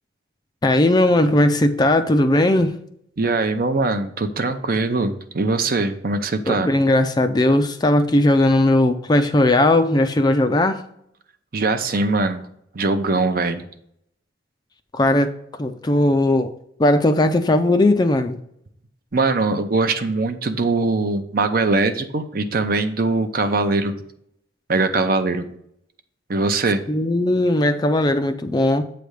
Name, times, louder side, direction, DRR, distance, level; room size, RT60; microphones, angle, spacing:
voice 1, 0.6-2.8 6.5-10.8 14.9-16.5 16.8-18.4 26.9-28.9, left 1 dB, 20° left, 9 dB, 0.4 m, -18 dB
voice 2, 3.2-6.7 11.5-12.4 12.7-13.6 19.1-23.9 24.7-25.5 26.3-26.8, right 3 dB, 50° right, 9 dB, 0.6 m, -21 dB
8.3 x 3.4 x 6.4 m, 0.73 s
head